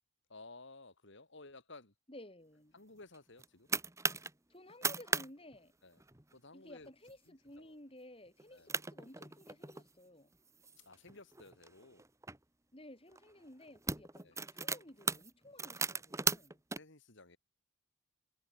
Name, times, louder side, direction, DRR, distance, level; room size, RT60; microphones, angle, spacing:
voice 1, 0.3-1.9 2.7-3.7 5.8-6.0 6.3-6.9 7.3-7.8 8.5-8.7 10.8-12.0 14.2-14.4 16.7-17.4, left 3 dB, 55° left, 2.5 m, -55 dB
voice 2, 2.1-2.8 4.5-5.7 6.5-10.3 12.7-16.6, left 1 dB, 25° left, 5.7 m, -55 dB
sound 1, 3.1-4.3 4.7-5.3 5.5-5.6 6.0-6.3 6.9-7.1 7.6-7.7 8.4-8.5 8.7-9.9 10.5-12.4 13.1-13.3 13.6-16.8, right 4 dB, 15° right, 1.6 m, -37 dB
head